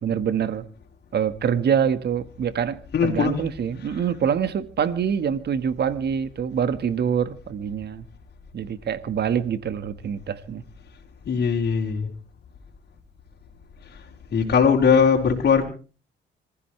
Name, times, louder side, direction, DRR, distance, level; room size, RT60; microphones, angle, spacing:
voice 1, 0.0-0.7 1.1-8.0 8.5-10.6, right 8 dB, 55° right, 1.6 m, -25 dB
voice 2, 2.9-3.4 11.2-12.1 14.3-15.6, left 6 dB, 55° left, 4.4 m, -19 dB
26.5 x 15.0 x 3.3 m
cardioid pair, 90°, 20 cm